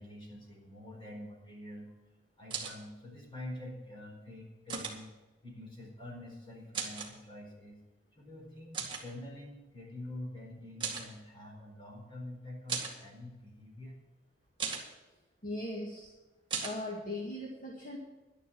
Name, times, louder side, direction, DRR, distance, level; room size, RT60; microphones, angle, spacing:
voice 1, 0.0-1.9 2.4-5.1 5.4-7.8 8.2-13.9, left 1 dB, 30° left, 0 dB, 4.6 m, -46 dB
sound 1, 2.5-2.8 4.7-5.0 6.7-7.1 8.7-9.0 10.8-11.1 12.7-13.0 14.6-14.9 16.5-16.8, right 6 dB, 25° right, 2.1 m, -36 dB
voice 2, 15.4-16.1 16.6-18.0, left 1 dB, 45° left, -2 dB, 2.0 m, -39 dB
11.5 x 11.0 x 6.2 m, 1.1 s
head